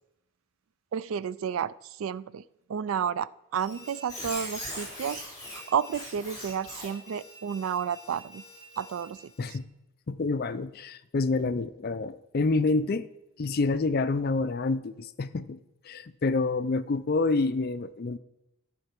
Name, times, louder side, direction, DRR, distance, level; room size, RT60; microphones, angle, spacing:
voice 1, 0.9-2.4 2.7-8.4 8.8-9.6, right 7 dB, 70° right, 19 dB, 0.3 m, -32 dB
Squeak, 3.5-9.5, left 1 dB, 20° left, 3.6 m, -42 dB
voice 2, 10.1-13.1 13.4-15.6 15.8-18.2, left 3 dB, 45° left, 13 dB, 0.4 m, -28 dB
13.5 x 4.6 x 5.9 m, 0.89 s
head